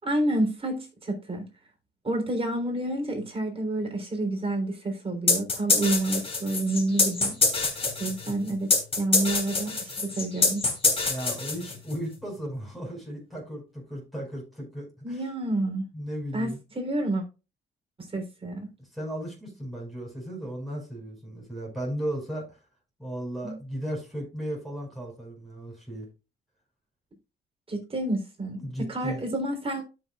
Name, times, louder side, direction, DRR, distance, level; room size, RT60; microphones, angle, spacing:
voice 1, 0.0-1.5 2.0-7.4 8.0-10.6 15.0-15.8 16.3-17.2 18.0-18.7 23.4-23.6 27.7-29.8, right 1 dB, 30° right, 3.6 m, -29 dB
sound 1, 5.3-12.0, left 3 dB, 30° left, 3.2 m, -25 dB
voice 2, 11.1-15.2 15.9-16.6 18.8-22.6 23.0-26.1 28.6-29.2, right 1 dB, ahead, 5.4 m, -35 dB
13.0 x 6.4 x 2.4 m
cardioid pair, 90°, 20 cm